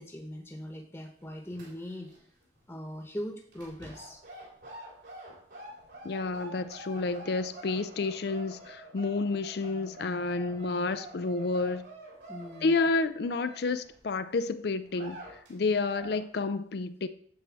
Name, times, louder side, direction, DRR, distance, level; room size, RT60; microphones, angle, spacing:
voice 1, 0.0-2.1 2.7-4.2 12.3-12.9, equal, 10° left, 1.0 m, -40 dB
sound 1, 1.2-2.2 2.4-2.6 3.5-14.0 14.4-14.5 14.9-15.5 15.8-16.2, right 1 dB, 65° right, 3.7 m, -47 dB
voice 2, 6.0-11.8 12.6-17.1, left 3 dB, 55° left, 0.4 m, -30 dB
Wind instrument woodwind instrument, 7.6-13.8, equal, 90° right, 4.2 m, -60 dB
9.4 x 4.4 x 7.6 m
head